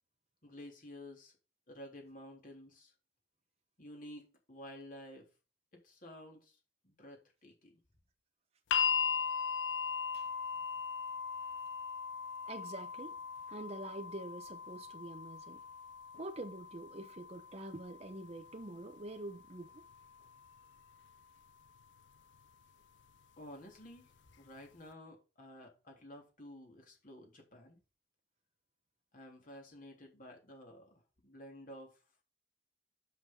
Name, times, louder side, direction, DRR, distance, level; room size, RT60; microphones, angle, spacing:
voice 1, 0.4-1.3 1.7-2.9 3.8-5.3 5.8-6.6 6.8-7.8 23.4-27.8 29.1-32.0, left 1 dB, 45° left, 3.5 m, -52 dB
sound 1, 8.7-20.8 21.9-22.0, left 6 dB, 70° left, 0.4 m, -39 dB
voice 2, 12.5-13.2 13.5-15.6 16.2-19.8, right 1 dB, 35° right, 0.9 m, -46 dB
7.9 x 6.7 x 3.9 m
head